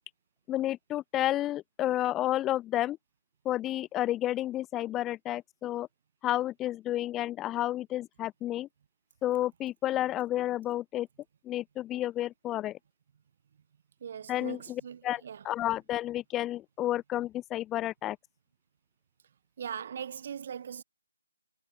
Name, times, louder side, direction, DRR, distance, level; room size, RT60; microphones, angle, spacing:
voice 1, 0.5-3.0 3.4-5.9 6.2-8.7 9.2-11.1 11.5-12.8 14.3-18.2, left 13 dB, 15° left, 0.6 m, -31 dB
voice 2, 14.0-15.4 19.6-20.8, right 8 dB, 40° right, 4.1 m, -40 dB
figure-of-eight pair, 150°, 0 cm